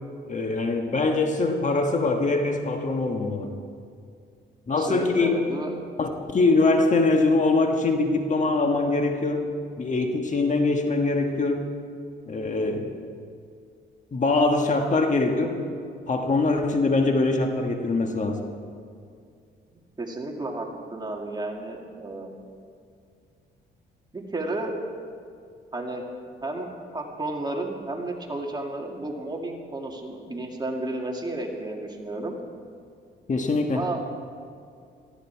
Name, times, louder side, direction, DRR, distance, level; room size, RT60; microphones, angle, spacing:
voice 1, 0.3-3.5 4.7-5.4 6.0-9.5 9.8-11.7 12.3-13.0 14.1-15.6 16.1-18.4 33.3-33.8, left 3 dB, 40° left, 4 dB, 1.5 m, -23 dB
voice 2, 4.8-5.8 20.0-22.3 24.1-24.8 25.7-26.0 26.4-32.4 33.7-34.0, right 2 dB, 20° right, 1 dB, 2.3 m, -32 dB
18.5 x 14.0 x 4.7 m, 2.3 s
cardioid pair, 90°, 20 cm